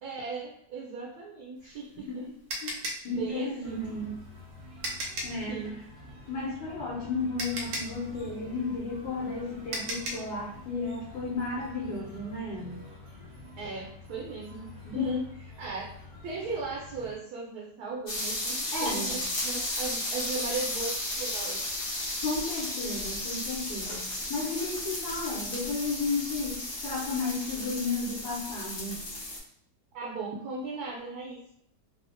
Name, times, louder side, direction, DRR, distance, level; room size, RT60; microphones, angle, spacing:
voice 1, 0.0-2.3 3.1-3.9 5.5-5.8 13.6-15.2 15.6-15.9 16.2-21.6 29.9-31.5, right 4 dB, 70° right, -3 dB, 1.1 m, -37 dB
sound 1, 1.6-5.5 6.9-7.0 7.4-10.3, right 1 dB, 90° right, 1.3 m, -36 dB
voice 2, 2.6-4.1 5.2-5.7 6.3-12.9 14.8-15.1 18.7-19.2 22.2-29.1, left 3 dB, 75° left, -6 dB, 1.3 m, -33 dB
sound 2, 3.6-17.2, left 2 dB, 50° right, 0.9 m, -48 dB
sound 3, 18.1-29.4, left 1 dB, 50° left, 0.7 m, -34 dB
3.3 x 2.0 x 2.5 m, 0.72 s
omnidirectional pair, 1.8 m